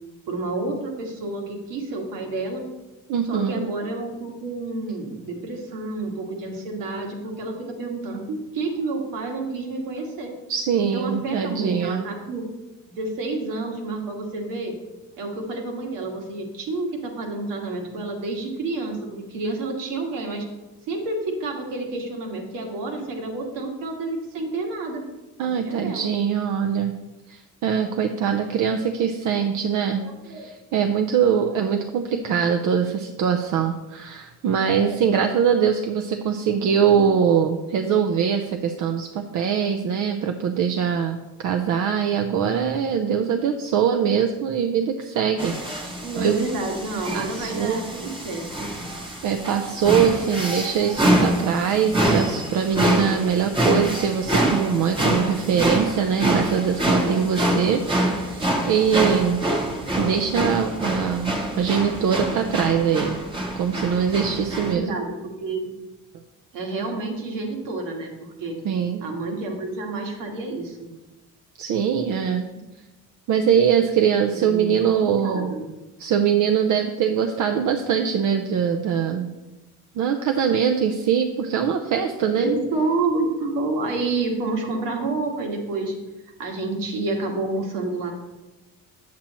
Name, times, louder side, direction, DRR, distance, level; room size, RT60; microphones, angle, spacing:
voice 1, 0.3-2.6 3.3-10.3 10.8-12.4 13.0-14.7 15.2-20.5 20.9-25.0 25.4-26.1 29.3-29.4 30.0-30.5 34.6-35.0 36.7-37.3 46.0-48.7 57.0-57.7 59.6-59.9 64.5-65.7 66.5-68.6 69.0-70.9 74.3-75.7 82.3-85.9 86.4-88.1, right 2 dB, 90° right, 1 dB, 1.7 m, -29 dB
voice 2, 3.1-3.7 10.5-12.1 25.4-26.9 27.3-46.5 47.1-47.8 49.2-59.4 59.9-63.2 63.6-65.0 68.6-69.0 71.6-72.5 73.3-75.6 76.0-79.3 79.9-82.5, right 7 dB, 65° right, 6 dB, 0.6 m, -22 dB
sound 1, 45.4-64.7, right 1 dB, 15° right, 1.1 m, -25 dB
8.4 x 7.6 x 3.0 m, 1.1 s
cardioid pair, 135°, 32 cm